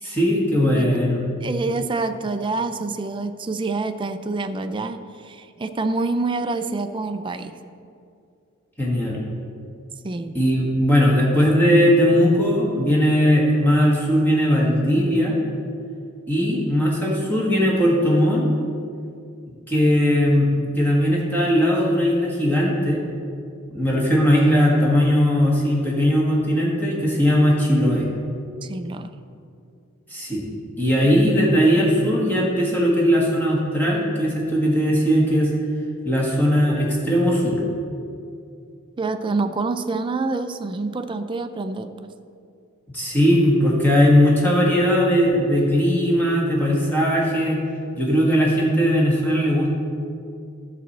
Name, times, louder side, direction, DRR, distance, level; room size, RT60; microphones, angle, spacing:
voice 1, 0.0-1.2 8.8-9.2 10.3-15.4 16.3-18.5 19.7-23.0 23.7-28.1 30.1-30.5 30.8-35.5 36.0-37.6 42.9-47.6 48.0-49.7, equal, 10° left, -4 dB, 1.5 m, -19 dB
voice 2, 1.4-7.5 10.0-10.3 28.6-29.2 39.0-41.9, right 3 dB, 25° right, 8 dB, 0.4 m, -27 dB
12.0 x 4.2 x 7.2 m, 2.4 s
head